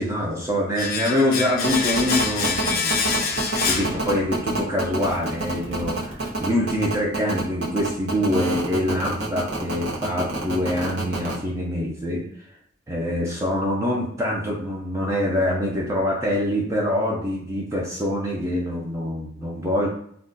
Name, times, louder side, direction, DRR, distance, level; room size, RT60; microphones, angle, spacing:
voice 1, 0.0-3.3 3.7-12.2 12.9-19.9, left 1 dB, 15° right, -3 dB, 0.5 m, -25 dB
Domestic sounds home sounds, 0.8-4.6 4.8-5.0, left 5 dB, 50° left, 0.4 m, -26 dB
sound 1, 1.6-11.3, right 3 dB, 65° right, 0.9 m, -27 dB
2.4 x 2.2 x 3.7 m, 0.66 s
head